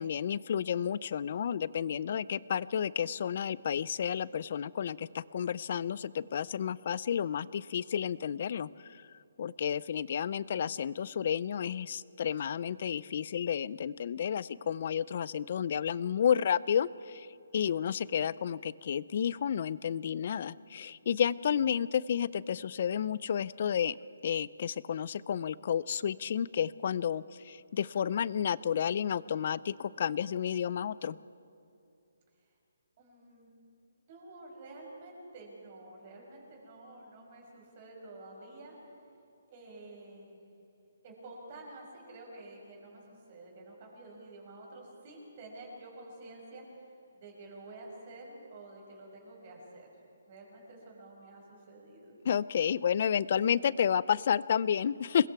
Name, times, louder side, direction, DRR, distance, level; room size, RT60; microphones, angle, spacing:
voice 1, 0.0-9.0 9.4-17.3 17.5-24.0 24.2-31.2 52.2-55.3, left 8 dB, 40° left, 20 dB, 0.4 m, -31 dB
voice 2, 33.0-33.5 34.1-38.8 39.5-40.4 41.0-43.0 43.3-46.6 47.1-49.9 50.3-52.2, right 2 dB, 30° right, -1 dB, 5.9 m, -49 dB
27.0 x 21.5 x 4.7 m, 2.6 s
hypercardioid pair, 170°, 0 cm